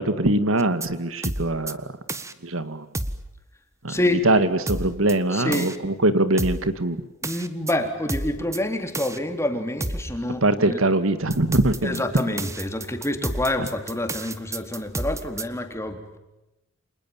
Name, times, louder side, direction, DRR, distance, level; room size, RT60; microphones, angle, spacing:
voice 1, 0.0-1.9 2.4-2.9 3.8-3.9 4.2-7.0 10.4-12.0, right 2 dB, 70° right, 12 dB, 1.9 m, -22 dB
sound 1, 0.6-0.9 1.2-1.7 2.1-2.3 2.9-3.3 4.7-5.1 5.5-5.8 6.4-6.7 7.2-7.7 8.1-8.6 8.9-9.2 9.8-10.1 11.3-15.4, right 1 dB, 15° right, 1.5 m, -30 dB
voice 2, 3.9-4.2 5.3-5.8 7.2-10.8 11.8-16.2, left 1 dB, 15° left, 6 dB, 3.5 m, -27 dB
30.0 x 27.0 x 7.3 m, 0.97 s
head